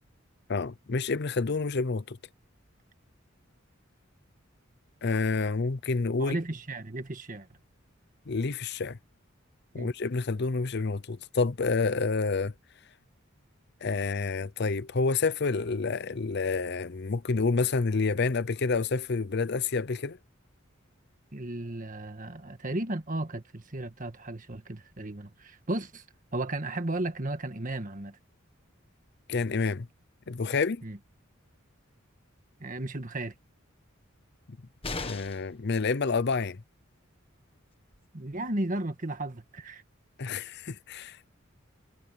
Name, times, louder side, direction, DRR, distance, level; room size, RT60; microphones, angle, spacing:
voice 1, 0.5-2.2 5.0-6.4 8.3-9.0 9.7-12.5 13.8-20.2 29.3-29.9 30.3-30.8 35.0-36.6 40.2-41.2, left 4 dB, 55° left, 0.7 m, -28 dB
voice 2, 6.2-7.5 9.7-9.9 21.3-26.0 26.3-28.2 30.8-31.0 32.6-33.3 38.1-39.8, right 1 dB, 40° right, 1.7 m, -34 dB
sound 1, 34.8-35.6 37.5-37.6 37.9-38.0, left 3 dB, 30° left, 1.5 m, -36 dB
head